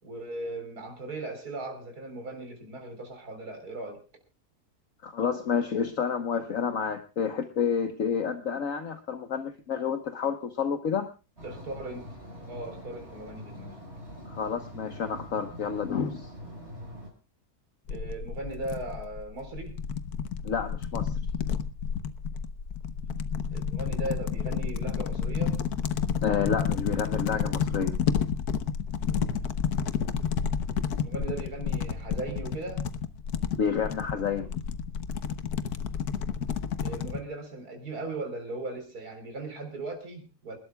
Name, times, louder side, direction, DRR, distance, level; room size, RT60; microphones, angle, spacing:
voice 1, 0.0-4.0 11.4-13.8 17.9-19.8 23.5-25.6 31.0-32.8 36.8-40.6, right 2 dB, 70° right, 4 dB, 4.5 m, -38 dB
voice 2, 5.0-11.1 14.3-16.3 20.4-21.2 26.2-28.0 33.6-34.5, left 6 dB, 55° left, 8 dB, 1.4 m, -29 dB
sound 1, 11.4-17.1, equal, 40° right, 6.2 m, -44 dB
sound 2, 17.9-37.2, left 7 dB, 75° left, 1.5 m, -30 dB
28.0 x 12.5 x 2.3 m, 0.31 s
omnidirectional pair, 1.7 m